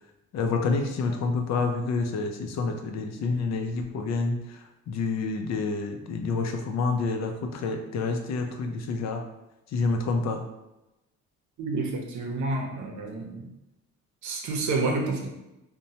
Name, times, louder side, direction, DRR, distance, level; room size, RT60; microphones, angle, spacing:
voice 1, 0.3-4.4 4.9-9.2 9.7-10.4, left 4 dB, 60° left, 4 dB, 0.5 m, -28 dB
voice 2, 11.6-13.5 14.2-15.3, right 3 dB, 70° right, 2 dB, 0.7 m, -29 dB
3.0 x 2.2 x 2.7 m, 0.96 s
cardioid pair, 90°, 30 cm